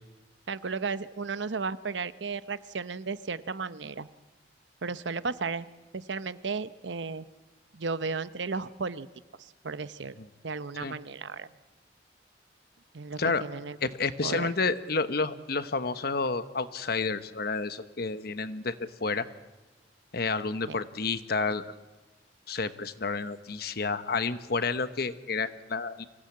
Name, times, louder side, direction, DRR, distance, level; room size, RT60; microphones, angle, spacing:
voice 1, 0.5-4.1 4.8-5.7 5.9-7.3 7.7-9.1 9.4-10.2 10.4-11.5 12.9-13.8 14.2-14.5 20.7-20.8, right 4 dB, 85° right, 14 dB, 0.8 m, -34 dB
voice 2, 13.8-19.3 20.1-21.8 22.5-26.0, left 4 dB, 60° left, 11 dB, 1.1 m, -30 dB
25.0 x 17.0 x 8.7 m, 1.2 s
head